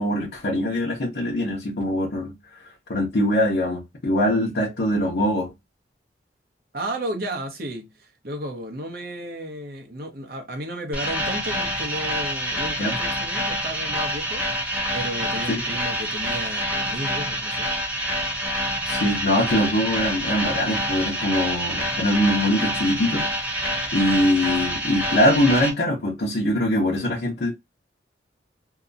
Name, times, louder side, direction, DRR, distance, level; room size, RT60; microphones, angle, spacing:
voice 1, 0.0-2.3 2.9-5.5 12.8-12.9 15.5-15.6 18.8-23.5 23.9-27.5, left 1 dB, 65° left, 0.7 m, -22 dB
voice 2, 6.7-17.7, right 1 dB, 60° right, 0.8 m, -33 dB
sound 1, 10.9-25.7, equal, 10° right, 0.8 m, -27 dB
2.8 x 2.2 x 2.5 m
head